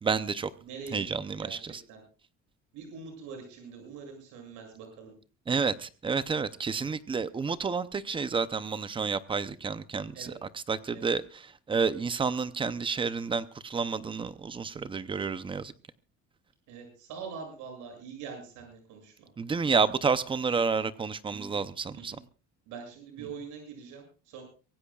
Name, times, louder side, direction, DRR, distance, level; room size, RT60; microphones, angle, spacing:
voice 1, 0.0-0.5 0.9-1.7 5.5-11.2 11.7-15.7 19.4-22.2, right 5 dB, 15° right, 0.6 m, -30 dB
voice 2, 0.6-1.1 1.4-2.0 2.7-5.1 10.1-10.3 10.9-11.1 16.7-19.3 21.3-21.6 21.9-22.2 22.7-24.4, right 5 dB, 75° right, 7.7 m, -44 dB
24.5 x 17.0 x 2.4 m
cardioid pair, 170°, 31 cm